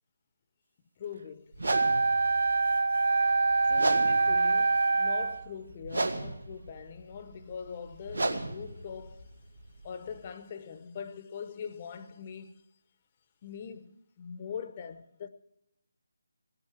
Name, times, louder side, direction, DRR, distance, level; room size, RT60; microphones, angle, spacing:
voice 1, 1.0-2.1 3.6-9.3 9.8-12.6 13.4-15.3, left 7 dB, 30° left, 0.8 m, -42 dB
sound 1, 1.5-10.3, right 2 dB, 80° right, 1.8 m, -36 dB
Wind instrument woodwind instrument, 1.7-5.5, right 3 dB, 55° right, 0.4 m, -25 dB
16.5 x 8.9 x 7.5 m
figure-of-eight pair, 165°, 0 cm